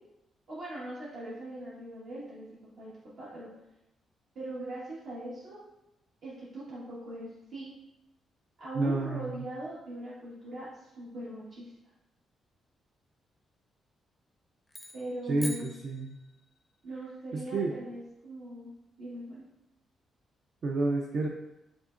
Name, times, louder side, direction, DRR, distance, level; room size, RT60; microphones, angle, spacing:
voice 1, 0.5-2.5 2.8-2.9 3.2-3.5 4.3-5.6 6.2-7.7 8.6-11.7 14.9-15.7 16.8-18.7 19.0-19.4, right 1 dB, 65° right, -9 dB, 1.4 m, -40 dB
voice 2, 8.7-9.3 15.3-16.2 17.3-17.8 20.6-21.3, right 2 dB, 50° right, 1 dB, 0.4 m, -30 dB
sound 1, 14.7-16.6, left 1 dB, 10° left, 0.5 m, -44 dB
6.2 x 3.4 x 2.5 m, 0.91 s
cardioid pair, 140°, 0 cm